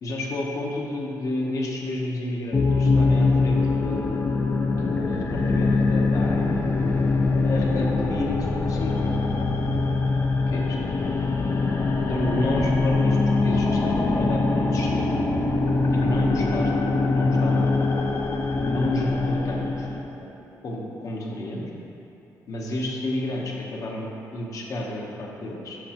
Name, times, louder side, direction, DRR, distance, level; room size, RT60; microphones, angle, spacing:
voice 1, 0.0-4.1 4.7-6.7 7.4-9.1 10.5-10.8 12.0-15.2 15.9-17.9 18.5-19.9 20.6-21.6 22.5-25.8, left 1 dB, 50° left, -2 dB, 1.0 m, -30 dB
sound 1, 2.5-20.0, left 3 dB, 35° left, 0.5 m, -23 dB
7.8 x 6.3 x 2.9 m, 2.9 s
cardioid pair, 145°, 7 cm